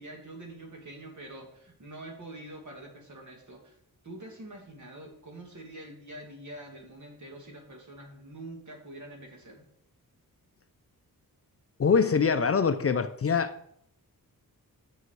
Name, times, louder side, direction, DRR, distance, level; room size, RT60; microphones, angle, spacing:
voice 1, 0.0-3.8 4.0-9.7, right 1 dB, 55° right, 1 dB, 2.4 m, -45 dB
voice 2, 11.8-13.5, left 5 dB, 40° left, 10 dB, 0.5 m, -24 dB
9.3 x 6.3 x 4.7 m, 0.73 s
wide cardioid pair, 150°, 36 cm